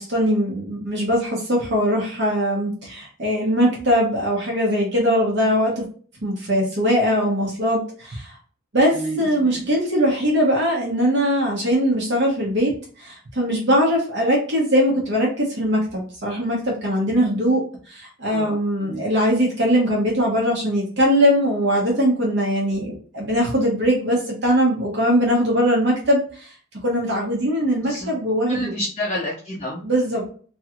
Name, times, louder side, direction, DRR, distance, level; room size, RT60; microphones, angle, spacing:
voice 1, 0.0-5.8 6.2-8.3 8.7-12.7 13.0-17.6 17.9-26.5 26.8-28.7 29.8-30.2, equal, 50° right, -3 dB, 1.0 m, -21 dB
voice 2, 8.9-9.7 18.3-19.0 27.8-28.1 28.5-29.8, equal, 30° left, -6 dB, 0.6 m, -30 dB
3.0 x 2.9 x 2.4 m, 0.43 s
head